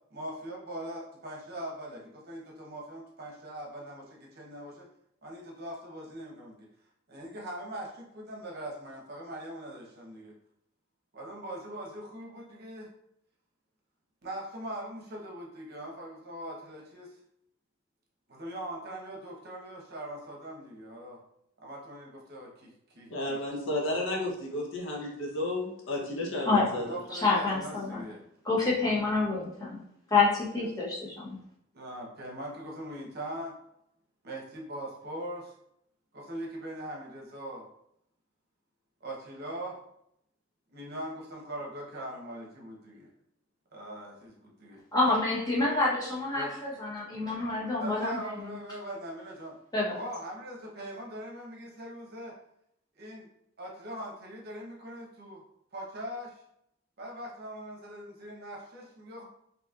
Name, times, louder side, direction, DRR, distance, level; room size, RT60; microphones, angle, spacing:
voice 1, 0.1-4.9 5.2-6.7 7.1-10.4 11.1-12.9 14.2-17.1 18.3-21.2 21.6-23.4 26.7-28.2 28.8-29.1 31.7-33.6 34.2-35.5 36.1-37.7 39.0-39.8 40.7-43.1 43.7-44.8 46.3-46.6 47.8-49.6 49.9-52.3 52.9-53.3 53.6-55.4 55.7-56.4 57.0-59.2, right 1 dB, 50° right, -2 dB, 0.8 m, -41 dB
voice 2, 23.1-26.9, left 1 dB, 65° left, -1 dB, 0.8 m, -32 dB
voice 3, 27.2-28.0 28.4-29.8 30.1-31.3 44.9-48.3 49.7-50.0, left 3 dB, 20° left, -6 dB, 0.9 m, -27 dB
4.1 x 2.8 x 2.4 m, 0.76 s
head